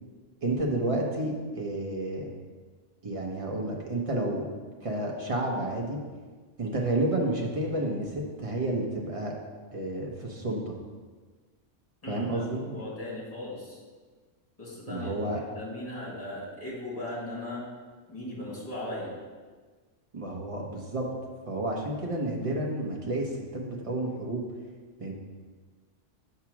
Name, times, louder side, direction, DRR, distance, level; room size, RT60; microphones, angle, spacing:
voice 1, 0.4-2.3 3.0-4.5 4.8-6.0 6.6-9.4 9.7-10.7 12.1-12.8 14.9-15.4 20.1-21.1 21.5-24.4 25.0-25.1, right 1 dB, 30° right, -1 dB, 0.9 m, -30 dB
voice 2, 12.0-13.8 14.6-17.6 18.1-19.1, left 1 dB, 30° left, -6 dB, 2.0 m, -38 dB
7.3 x 2.9 x 6.0 m, 1.4 s
omnidirectional pair, 1.3 m